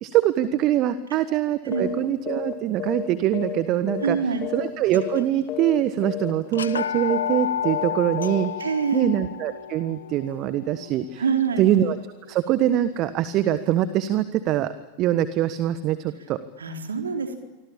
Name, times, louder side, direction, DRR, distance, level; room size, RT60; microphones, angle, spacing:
voice 1, 0.0-4.2 4.5-8.7 8.9-11.2 11.6-12.0 12.3-14.7 15.0-16.4, right 12 dB, 35° right, 13 dB, 1.4 m, -23 dB
sound 1, 1.7-2.0 2.3-2.5 2.8-4.2 4.4-4.7 4.9-5.2 5.5-5.8 6.0-6.3 6.6-6.8 7.1-7.4 7.6-7.9 8.2-8.5, left 11 dB, 35° left, 3.6 m, -32 dB
voice 2, 4.0-4.5 8.6-9.1 11.2-11.7 16.6-17.4, right 6 dB, 70° right, 4 dB, 4.1 m, -25 dB
sound 2, 4.9-5.4 5.8-5.9 6.5-12.4, left 8 dB, 70° left, 1.3 m, -32 dB
27.5 x 25.0 x 8.8 m, 1.2 s
figure-of-eight pair, 90°, 0 cm